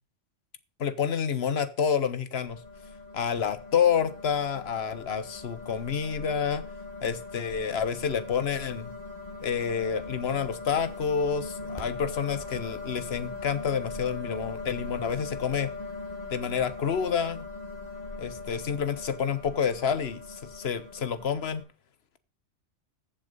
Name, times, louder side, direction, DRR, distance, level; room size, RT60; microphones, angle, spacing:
voice 1, 0.8-2.6 3.1-6.6 7.0-8.9 9.4-15.7 16.3-17.4 18.2-21.6, left 7 dB, 60° left, 13 dB, 1.3 m, -28 dB
sound 1, 2.4-21.6, left 3 dB, 35° left, 2.6 m, -40 dB
15.0 x 7.3 x 5.4 m, 0.35 s
omnidirectional pair, 1.2 m